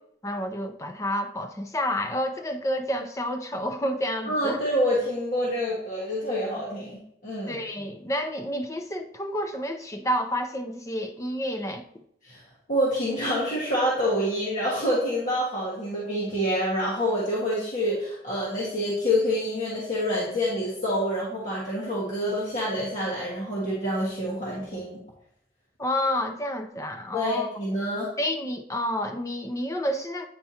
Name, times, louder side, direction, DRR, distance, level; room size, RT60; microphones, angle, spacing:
voice 1, 0.2-4.6 7.5-11.8 25.8-27.5 28.2-30.3, left 1 dB, 20° left, 0.5 m, -29 dB
voice 2, 4.2-7.6 12.2-12.4 12.7-25.0 27.1-28.1, equal, 50° left, 1.7 m, -27 dB
9.4 x 4.5 x 2.8 m
head